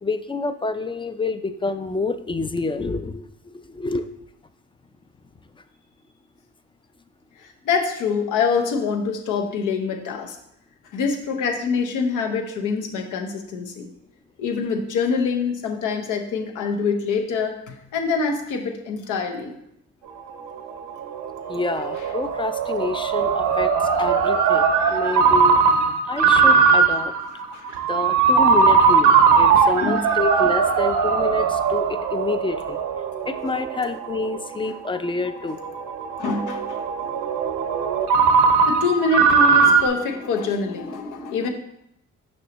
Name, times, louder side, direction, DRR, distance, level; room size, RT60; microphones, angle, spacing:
voice 1, 0.0-3.2 3.7-4.1 21.5-25.6 26.0-27.1 27.9-32.8 33.3-35.6, left 3 dB, 15° left, 10 dB, 0.3 m, -28 dB
voice 2, 7.4-10.4 10.9-13.9 14.4-19.5 27.5-27.8 29.6-30.0 36.2-37.3 38.7-41.5, left 5 dB, 90° left, 4 dB, 0.9 m, -25 dB
Ringtone, 20.1-39.9, right 5 dB, 80° right, 0.8 m, -20 dB
6.2 x 5.3 x 3.0 m, 0.77 s
cardioid pair, 90°, 30 cm